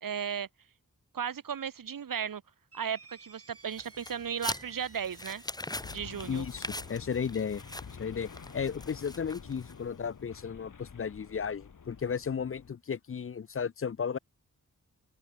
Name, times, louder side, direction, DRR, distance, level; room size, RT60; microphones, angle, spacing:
voice 1, 0.0-0.5 1.1-2.4 2.7-5.4 5.9-6.5, right 7 dB, 80° right, 1.3 m, -35 dB
sound 1, 2.7-5.6, right 4 dB, 45° right, 3.5 m, -54 dB
sound 2, 3.7-10.0, left 2 dB, 10° left, 1.2 m, -42 dB
sound 3, 5.8-12.7, left 6 dB, 70° left, 3.0 m, -48 dB
voice 2, 6.3-7.6 8.0-14.2, left 6 dB, 40° left, 0.5 m, -34 dB
open air
wide cardioid pair, 120°, 33 cm